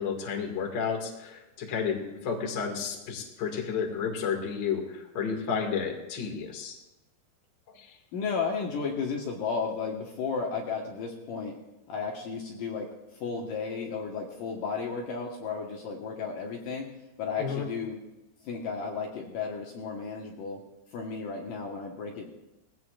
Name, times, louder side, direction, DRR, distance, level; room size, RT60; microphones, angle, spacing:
voice 1, 0.0-2.0 2.2-6.7 7.7-7.9 17.4-17.7, left 6 dB, 45° left, 1 dB, 1.6 m, -31 dB
voice 2, 8.1-11.6 11.9-16.9 17.2-18.0 18.4-20.6 20.9-22.3, left 5 dB, 65° left, 0 dB, 2.5 m, -34 dB
21.0 x 16.5 x 2.4 m, 0.95 s
omnidirectional pair, 5.0 m